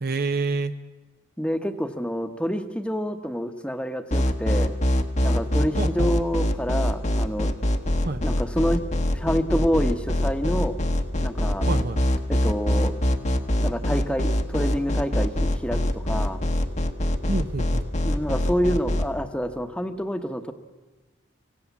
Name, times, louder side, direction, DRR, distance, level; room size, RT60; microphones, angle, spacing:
voice 1, 0.0-0.8 5.8-6.1 8.0-8.2 11.7-12.0 17.3-17.9, right 3 dB, 45° right, 11 dB, 0.7 m, -27 dB
voice 2, 1.4-4.7 5.2-7.5 8.2-8.8 9.1-10.8 11.2-11.7 12.3-12.9 13.6-16.4 18.0-20.5, equal, 5° left, 8 dB, 1.1 m, -27 dB
sound 1, 4.1-19.1, left 1 dB, 35° left, 1.1 m, -23 dB
25.5 x 17.0 x 7.2 m, 1.2 s
head